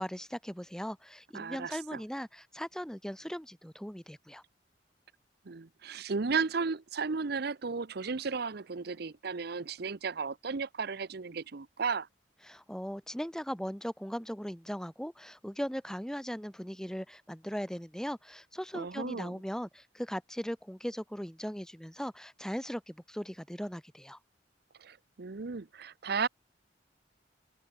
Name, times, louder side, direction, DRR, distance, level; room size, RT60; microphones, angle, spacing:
voice 1, 0.0-4.4 12.4-24.2, equal, 5° left, 2.9 m, -39 dB
voice 2, 1.3-2.0 5.5-12.1 18.7-19.4 24.8-26.3, right 5 dB, 60° right, 0.7 m, -34 dB
open air
head